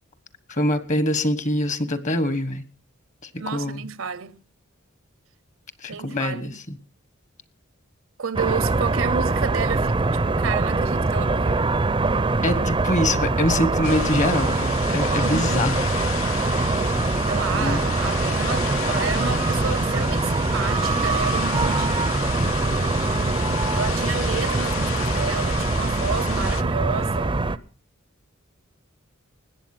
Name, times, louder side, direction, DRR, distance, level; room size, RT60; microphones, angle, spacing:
voice 1, 0.5-2.6 3.5-3.8 5.8-6.5 12.4-15.7 17.6-17.8, left 1 dB, 40° left, 1.3 m, -24 dB
voice 2, 3.4-4.4 5.9-6.6 8.2-11.7 15.2-15.7 17.2-22.1 22.7-27.4, right 6 dB, 75° right, 0.8 m, -31 dB
sound 1, 8.3-27.6, right 3 dB, 25° right, 0.5 m, -23 dB
sound 2, 13.8-26.6, left 6 dB, 85° left, 0.9 m, -33 dB
20.0 x 8.2 x 6.0 m
head